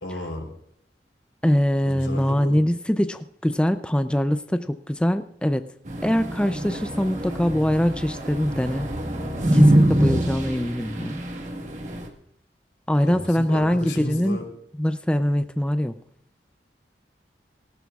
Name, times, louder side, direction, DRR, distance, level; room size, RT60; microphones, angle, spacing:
voice 1, 0.0-0.5 1.8-2.6 13.0-14.4, left 1 dB, 90° left, 3 dB, 3.7 m, -33 dB
voice 2, 1.4-5.7 6.0-8.9 9.5-11.3 12.9-14.4 14.8-16.0, equal, 5° left, 10 dB, 0.4 m, -23 dB
sound 1, 5.9-12.1, right 1 dB, 40° right, 1.5 m, -24 dB
18.5 x 16.5 x 2.4 m, 0.70 s
head